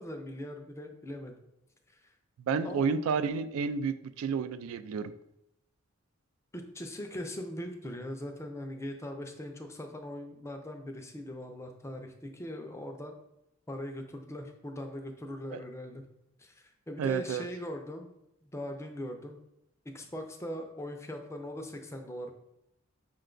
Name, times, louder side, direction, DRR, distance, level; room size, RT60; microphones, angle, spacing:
voice 1, 0.0-1.4 2.6-2.9 6.5-13.2 13.7-16.0 16.4-18.1 18.4-19.4 19.9-22.3, left 1 dB, 15° left, 4 dB, 0.4 m, -40 dB
voice 2, 2.5-5.1 15.5-15.6 17.0-17.5, right 5 dB, 80° right, 13 dB, 0.3 m, -30 dB
5.4 x 2.2 x 3.8 m, 0.83 s
head